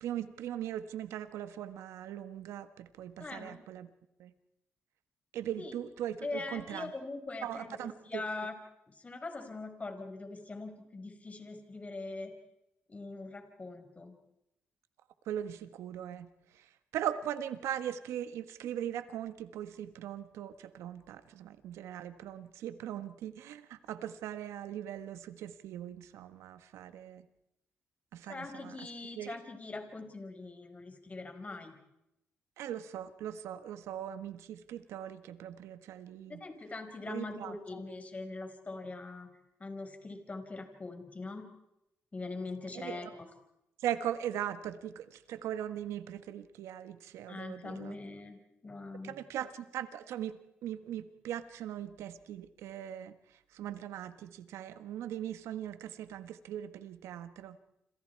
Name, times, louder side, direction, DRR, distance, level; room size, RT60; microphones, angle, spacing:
voice 1, 0.0-3.9 4.2-4.3 5.3-6.9 7.4-8.2 15.3-16.3 16.9-27.2 28.1-28.8 29.2-29.3 32.6-36.4 37.1-37.5 42.7-43.0 43.8-47.9 49.0-50.3 50.6-53.1 53.5-57.6, right 10 dB, 85° right, 11 dB, 1.5 m, -40 dB
voice 2, 3.2-3.6 5.6-5.7 6.2-8.6 8.9-12.3 12.9-14.2 28.3-31.7 36.3-39.3 39.6-41.6 42.1-43.3 47.3-49.2, left 3 dB, 30° left, 6 dB, 5.1 m, -42 dB
29.0 x 27.0 x 4.7 m, 0.85 s
cardioid pair, 70°, 5 cm